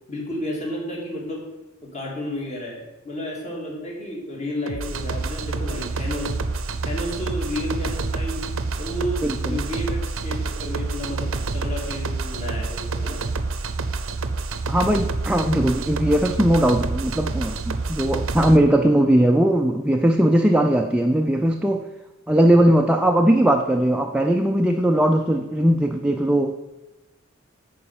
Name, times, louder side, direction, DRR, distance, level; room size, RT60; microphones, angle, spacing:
voice 1, 0.1-1.4 1.8-6.3 6.8-8.4 8.8-13.2, left 1 dB, 35° left, -2 dB, 2.5 m, -31 dB
sound 1, 4.7-18.6, right 3 dB, 80° right, 0.7 m, -28 dB
voice 2, 9.2-9.6 14.7-21.8 22.3-26.5, right 1 dB, 5° right, 3 dB, 0.4 m, -19 dB
9.8 x 4.6 x 7.2 m, 1.0 s
head